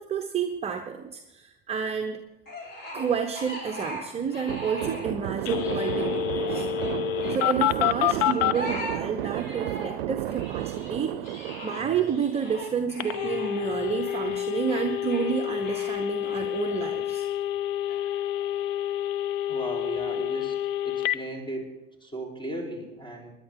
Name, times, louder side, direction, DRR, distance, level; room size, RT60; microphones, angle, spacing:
voice 1, 0.0-2.2 2.9-6.7 7.3-17.3, right 7 dB, 20° right, 4 dB, 1.0 m, -30 dB
sound 1, 2.5-5.1 5.4-7.5 8.1-10.0 10.3-17.3 17.9-19.2, equal, 30° left, 5.2 m, -40 dB
sound 2, 4.5-12.8, right 14 dB, 65° right, 0.6 m, -33 dB
Telephone, 5.4-8.6 13.0-21.2, left 12 dB, 50° left, 0.8 m, -28 dB
voice 2, 19.5-20.6 20.8-21.7 22.0-23.3, right 1 dB, 15° left, 0 dB, 4.0 m, -36 dB
19.5 x 11.0 x 3.8 m, 0.97 s
hypercardioid pair, 100°, 31 cm